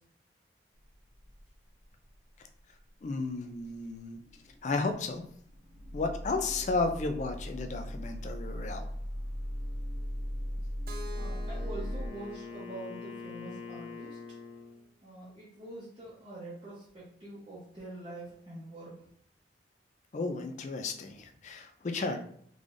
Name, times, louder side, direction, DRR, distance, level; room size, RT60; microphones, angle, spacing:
sound 1, 0.9-1.6 1.8-2.1 2.5-2.6 2.9-3.0 3.7-12.1, equal, 85° right, 1.2 m, -38 dB
voice 1, 3.0-4.2 4.6-5.2 5.9-8.9 20.1-22.2, left 3 dB, 40° left, 6 dB, 0.4 m, -33 dB
voice 2, 10.9-14.2 15.0-19.1, right 1 dB, 30° right, -8 dB, 0.8 m, -45 dB
Keyboard (musical), 10.9-14.8, left 1 dB, 55° right, 0.4 m, -50 dB
Wind instrument woodwind instrument, 11.0-14.8, left 5 dB, 85° left, 0.9 m, -45 dB
3.8 x 3.2 x 2.5 m, 0.65 s
head